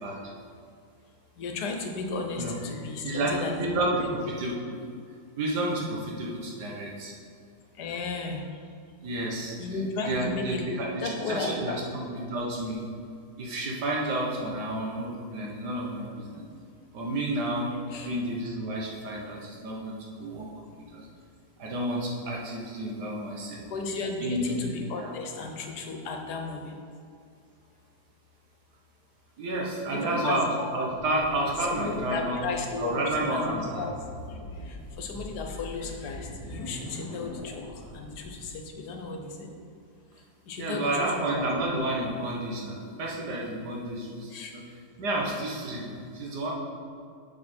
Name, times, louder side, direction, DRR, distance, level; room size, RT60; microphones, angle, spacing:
voice 1, 0.0-0.3 2.4-2.5 3.0-4.0 4.3-4.9 5.4-7.1 9.0-9.5 10.0-11.8 12.1-12.8 13.4-16.4 16.9-17.7 18.0-20.5 20.9-21.1 21.6-23.6 24.2-24.5 25.0-25.1 29.4-32.4 32.8-33.8 40.6-44.6 45.0-46.5, right 1 dB, 90° right, -2 dB, 1.7 m, -30 dB
voice 2, 1.4-3.6 4.0-4.1 7.8-8.4 9.6-10.8 11.0-11.8 17.9-18.2 19.2-19.3 23.7-26.7 29.9-30.7 31.8-33.0 33.3-33.9 34.7-37.6 37.9-39.5 40.5-41.4 44.3-44.5, left 3 dB, 80° left, 3 dB, 1.4 m, -34 dB
sound 1, 30.8-38.5, left 1 dB, 40° left, 1.8 m, -42 dB
6.4 x 5.7 x 4.3 m, 2.2 s
omnidirectional pair, 1.7 m